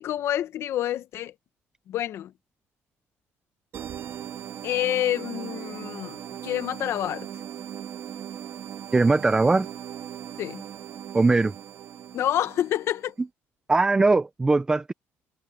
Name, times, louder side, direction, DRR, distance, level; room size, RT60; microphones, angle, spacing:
voice 1, 0.0-1.3 1.9-2.3 4.6-7.3 10.4-10.6 12.1-13.1, left 11 dB, 60° left, 1.3 m, -28 dB
sound 1, 3.7-13.1, right 10 dB, 55° right, 1.9 m, -39 dB
voice 2, 8.9-9.7 11.1-11.5 13.7-14.9, right 3 dB, 15° right, 0.5 m, -20 dB
cardioid pair, 140°, 5 cm